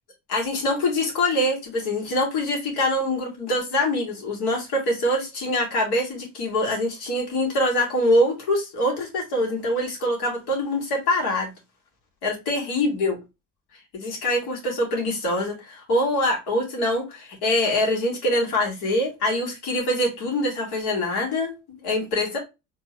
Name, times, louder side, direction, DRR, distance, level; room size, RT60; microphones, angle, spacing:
voice 1, 0.3-11.5 12.2-13.2 13.9-21.5 21.8-22.4, left 1 dB, 65° left, 2.3 m, -24 dB
4.4 x 2.8 x 3.2 m
hypercardioid pair, 50°, 42 cm